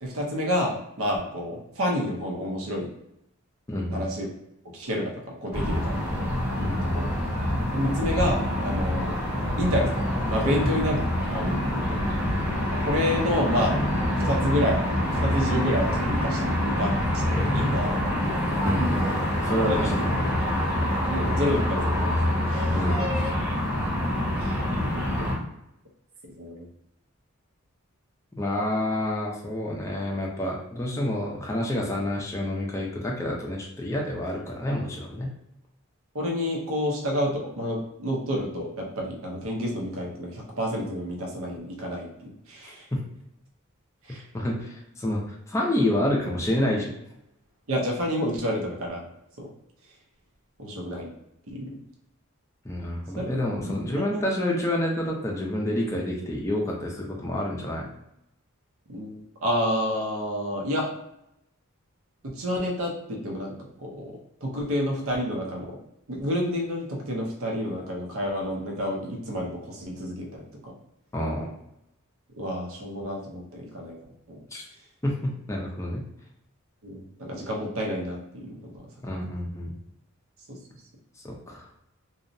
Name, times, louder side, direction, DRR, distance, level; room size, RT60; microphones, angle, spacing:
voice 1, 0.0-2.9 3.9-4.3 4.7-6.3 6.8-7.1 7.7-9.2 9.6-11.0 11.3-11.6 11.9-12.1 12.7-17.0 17.3-18.0 19.6-20.1 21.0-22.2 22.5-22.8 24.4-24.6 26.4-26.7 36.1-42.9 44.1-44.2 47.7-49.1 49.4-49.5 50.6-51.1 51.5-51.8 53.2-53.3 53.6-53.7 54.1-54.3 58.9-60.9 62.2-63.6 63.8-65.8 66.1-70.7 72.3-74.0 74.3-74.4 76.8-79.2, equal, 70° right, 0 dB, 0.7 m, -29 dB
voice 2, 3.7-4.0 6.6-7.0 10.4-10.7 18.6-20.4 22.7-23.0 28.3-35.3 42.9-43.0 44.3-46.9 52.6-57.9 71.1-71.5 74.5-74.6 75.0-76.0 79.0-79.7 81.2-81.6, left 1 dB, 15° left, -2 dB, 0.4 m, -28 dB
sound 1, 5.5-25.3, left 1 dB, 5° right, 0.9 m, -26 dB
2.7 x 2.0 x 2.5 m, 0.83 s
head